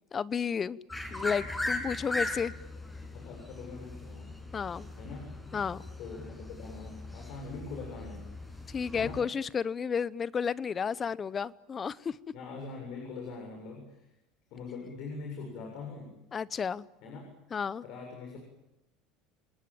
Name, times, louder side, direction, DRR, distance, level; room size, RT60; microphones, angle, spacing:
voice 1, 0.1-0.8 1.1-2.5 4.5-4.9 5.5-5.8 8.7-12.2 16.3-16.9 17.5-17.8, left 6 dB, 30° left, 19 dB, 0.9 m, -32 dB
sound 1, 0.9-9.2, left 2 dB, 15° left, 6.8 m, -39 dB
voice 2, 3.1-4.3 5.0-5.4 6.0-8.3 8.9-9.2 12.3-14.1 14.5-16.1 17.0-17.3 17.8-18.4, left 4 dB, 60° left, 2 dB, 7.5 m, -42 dB
28.5 x 20.0 x 8.9 m, 0.93 s
hypercardioid pair, 85°, 0 cm